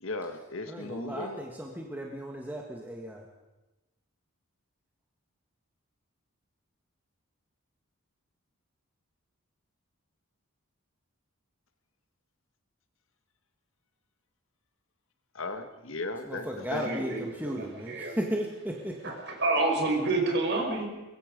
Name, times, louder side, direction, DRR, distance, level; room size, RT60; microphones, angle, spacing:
voice 1, 0.0-1.4 15.4-17.0, left 2 dB, 65° left, 8 dB, 1.7 m, -36 dB
voice 2, 0.7-3.2 16.3-18.9, equal, 10° right, 0 dB, 1.7 m, -35 dB
voice 3, 16.8-18.2 19.0-20.9, right 2 dB, 50° right, 1 dB, 5.5 m, -29 dB
23.5 x 22.0 x 5.3 m, 1.1 s
head